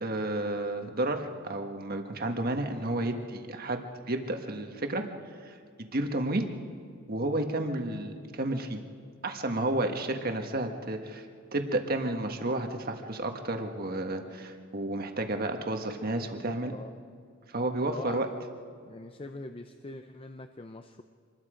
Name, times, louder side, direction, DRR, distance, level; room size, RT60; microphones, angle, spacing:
voice 1, 0.0-3.8 4.1-5.1 5.4-5.5 5.9-6.5 7.1-8.8 9.2-11.2 11.5-16.7 17.5-18.3, right 1 dB, 45° right, 5 dB, 1.5 m, -31 dB
voice 2, 16.4-17.0 17.8-18.3 18.8-21.0, left 2 dB, 25° left, 7 dB, 0.5 m, -43 dB
26.0 x 20.5 x 5.1 m, 2.2 s
head